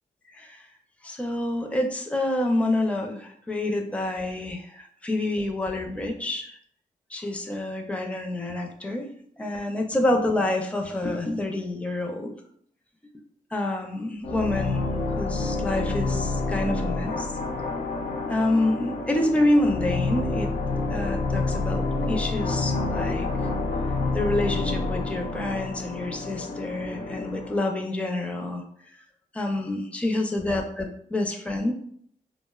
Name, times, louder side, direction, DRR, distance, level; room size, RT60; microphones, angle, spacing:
voice 1, 0.3-0.7 1.0-6.6 7.1-12.3 13.5-14.8 15.1-17.3 18.3-20.5 20.9-23.3 24.1-28.6 29.3-31.7, left 1 dB, 10° left, 3 dB, 0.5 m, -27 dB
sound 1, 14.2-27.6, left 3 dB, 75° left, 0.5 m, -28 dB
4.1 x 2.0 x 2.2 m, 0.64 s
cardioid pair, 65°, 15 cm